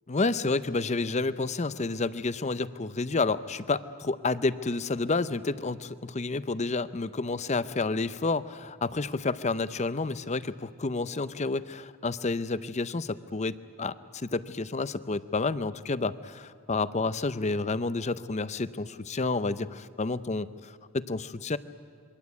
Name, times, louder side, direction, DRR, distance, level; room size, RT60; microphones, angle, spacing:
voice 1, 0.1-21.6, left 3 dB, 30° left, 15 dB, 0.6 m, -30 dB
26.5 x 23.0 x 8.3 m, 2.1 s
head